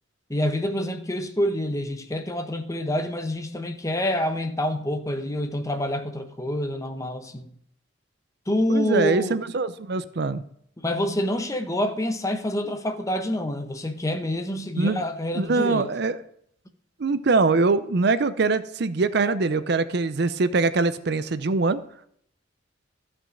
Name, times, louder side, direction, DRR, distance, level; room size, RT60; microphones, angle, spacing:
voice 1, 0.3-7.5 8.5-9.4 10.8-15.9, left 1 dB, 15° left, 1.0 m, -27 dB
voice 2, 8.7-10.4 14.8-15.0 15.3-16.2 17.0-21.8, right 3 dB, 55° right, 0.5 m, -23 dB
13.5 x 6.1 x 6.4 m
head